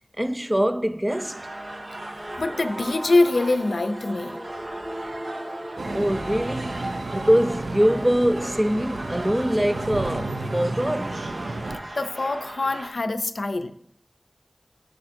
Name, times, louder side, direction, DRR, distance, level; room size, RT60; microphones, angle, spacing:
voice 1, 0.2-1.5 5.9-11.3, equal, 15° right, 0.4 m, -23 dB
sound 1, 1.1-12.9, right 1 dB, 60° right, 0.7 m, -38 dB
sound 2, 2.0-9.0, equal, 40° right, 2.1 m, -40 dB
voice 2, 2.4-4.4 12.0-13.7, left 2 dB, 80° left, 0.5 m, -24 dB
sound 3, 5.8-11.8, right 2 dB, 90° right, 0.4 m, -32 dB
8.5 x 6.4 x 2.6 m
wide cardioid pair, 60°, 0 cm